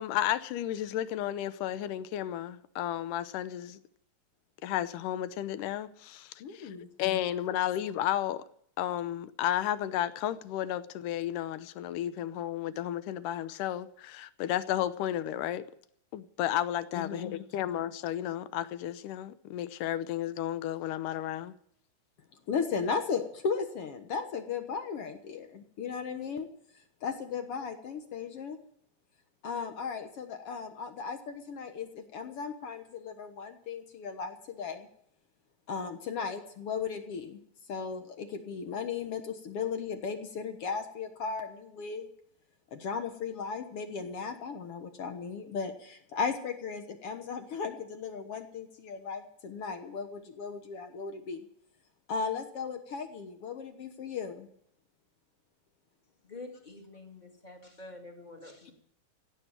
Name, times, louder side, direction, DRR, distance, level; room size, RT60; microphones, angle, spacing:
voice 1, 0.0-3.8 4.6-6.7 7.0-8.4 8.8-15.7 16.1-21.6, left 12 dB, 75° left, 2.2 m, -33 dB
voice 2, 6.4-6.9 16.9-17.3 22.5-26.5 27.0-28.6 29.4-31.2 31.5-34.8 35.7-37.3 37.7-42.1 42.8-45.7 46.1-51.4 52.1-54.5, left 5 dB, 60° left, 1.6 m, -36 dB
voice 3, 56.2-58.7, left 2 dB, 15° left, 1.5 m, -47 dB
16.5 x 7.9 x 9.1 m
omnidirectional pair, 4.0 m